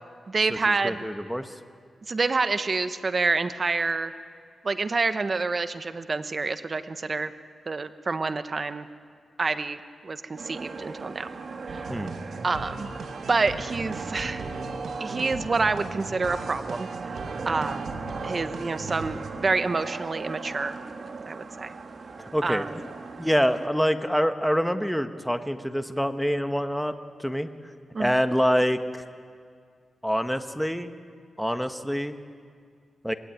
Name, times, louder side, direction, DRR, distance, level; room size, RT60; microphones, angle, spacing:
voice 1, 0.3-1.0 2.1-4.1 4.6-7.3 7.7-8.9 9.4-9.8 10.0-11.3 11.7-11.9 12.4-12.9 13.3-14.5 15.0-17.2 17.4-17.9 18.2-20.7 21.2-21.7 22.4-22.7 27.9-28.2, right 3 dB, 40° right, 10 dB, 1.2 m, -27 dB
voice 2, 0.8-1.5 11.9-12.2 22.2-22.7 23.2-26.9 27.2-27.5 28.0-28.8 30.0-30.9 31.4-32.2 33.0-33.1, equal, ahead, 8 dB, 1.3 m, -25 dB
sound 1, 10.4-23.7, right 4 dB, 55° right, 1.9 m, -38 dB
sound 2, 11.7-19.3, right 3 dB, 80° right, 2.3 m, -39 dB
26.0 x 20.5 x 9.3 m, 2.1 s
wide cardioid pair, 100°, 0 cm